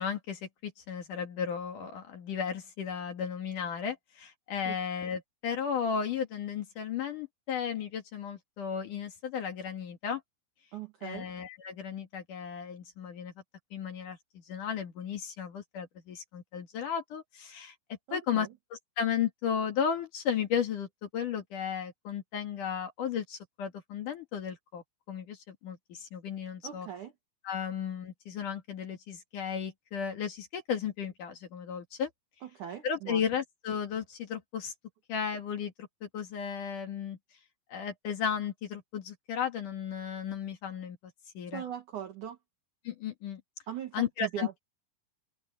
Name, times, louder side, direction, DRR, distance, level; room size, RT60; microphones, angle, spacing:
voice 1, 0.0-10.2 11.0-13.3 13.7-17.7 18.1-18.5 19.0-26.9 27.4-32.1 32.8-34.7 35.1-37.2 37.7-41.0 41.3-41.6 42.8-43.4 43.9-44.5, left 7 dB, 50° left, 2.8 m, -34 dB
voice 2, 10.7-11.3 18.1-18.5 26.6-27.1 32.4-33.2 41.5-42.4 43.7-44.5, right 10 dB, 65° right, 2.0 m, -40 dB
omnidirectional pair, 5.7 m